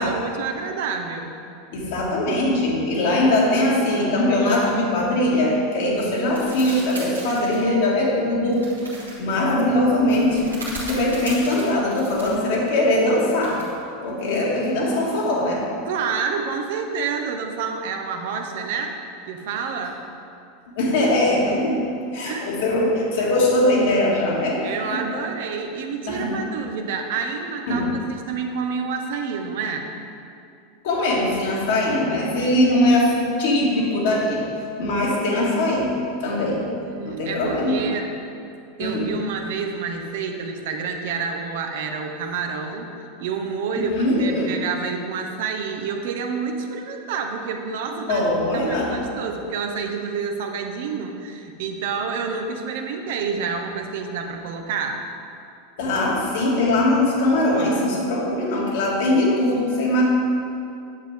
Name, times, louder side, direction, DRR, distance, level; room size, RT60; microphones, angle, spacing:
voice 1, 0.0-1.3 15.9-18.9 19.3-20.0 22.2-22.6 24.6-29.9 36.7-38.1 38.8-42.9 43.2-43.9 44.2-48.3 48.5-55.0, right 5 dB, 60° right, 4 dB, 0.9 m, -28 dB
voice 2, 1.7-8.7 9.2-10.6 10.9-13.7 14.0-15.7 20.7-21.9 22.1-24.6 24.9-25.0 26.1-26.4 27.7-27.9 30.8-34.5 34.8-36.7 37.0-37.9 38.8-39.1 43.8-44.6 48.1-49.0 55.8-60.0, left 1 dB, 60° left, -4 dB, 2.1 m, -21 dB
sound 1, 6.3-7.6 8.5-9.2 10.2-12.4 13.4-13.8, right 1 dB, 90° right, 1.8 m, -36 dB
9.4 x 7.4 x 3.5 m, 2.5 s
figure-of-eight pair, 85°, 0 cm